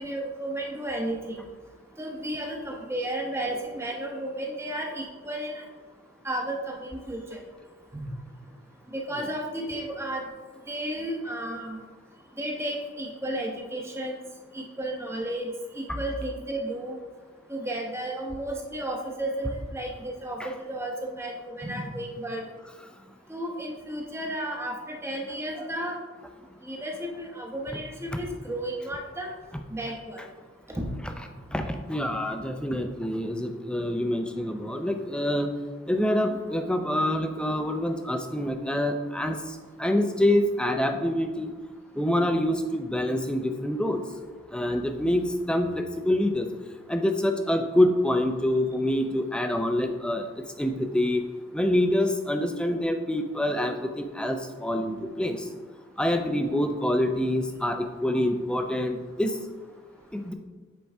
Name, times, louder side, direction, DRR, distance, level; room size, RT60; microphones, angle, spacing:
voice 1, 0.0-1.4 2.0-5.7 6.2-7.4 7.9-8.1 8.9-10.2 10.7-11.8 12.4-14.2 14.5-15.5 15.7-17.0 17.5-22.4 23.3-26.0 26.6-29.3 29.7-30.2 30.7-30.9, right 1 dB, 15° right, 1 dB, 0.9 m, -33 dB
voice 2, 31.5-35.5 35.9-39.4 39.8-41.5 42.0-44.0 44.5-46.5 46.9-50.3 50.6-51.2 51.5-55.4 56.0-59.4 60.1-60.3, left 1 dB, 5° left, 6 dB, 0.4 m, -26 dB
8.0 x 4.6 x 3.4 m, 1.4 s
head